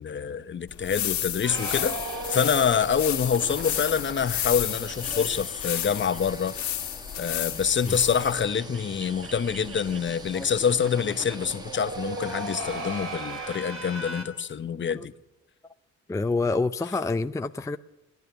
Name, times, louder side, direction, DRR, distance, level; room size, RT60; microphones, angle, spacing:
voice 1, 0.0-2.0 2.3-6.5 7.2-15.1, left 7 dB, 40° left, 0.9 m, -26 dB
sound 1, 0.7-8.5, left 11 dB, 70° left, 1.7 m, -32 dB
sound 2, 1.2-13.9, right 1 dB, 15° right, 1.3 m, -46 dB
sound 3, 1.4-6.5 6.8-6.9 7.2-7.3 7.5-14.2, right 2 dB, 45° right, 4.0 m, -38 dB
voice 2, 16.1-17.8, left 3 dB, 10° left, 0.5 m, -28 dB
18.0 x 11.0 x 6.9 m
cardioid pair, 90°, 30 cm